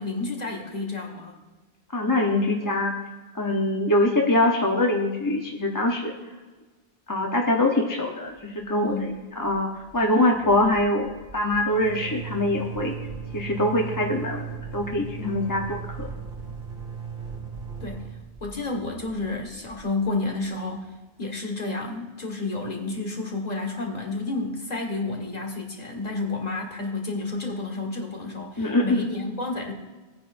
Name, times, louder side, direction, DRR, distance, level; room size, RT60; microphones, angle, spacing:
voice 1, 0.0-1.4 8.9-9.1 17.8-18.1 18.4-20.9 21.2-29.7, left 3 dB, 40° left, 1 dB, 1.7 m, -30 dB
voice 2, 1.9-2.9 3.3-6.1 7.1-13.0 13.3-14.5 14.7-16.1 28.6-29.0, left 1 dB, 20° left, 0 dB, 0.8 m, -23 dB
sound 1, 8.6-9.2 9.4-9.6 9.8-20.5, right 6 dB, 60° right, 2.1 m, -38 dB
18.0 x 9.4 x 2.6 m, 1.2 s
omnidirectional pair, 1.1 m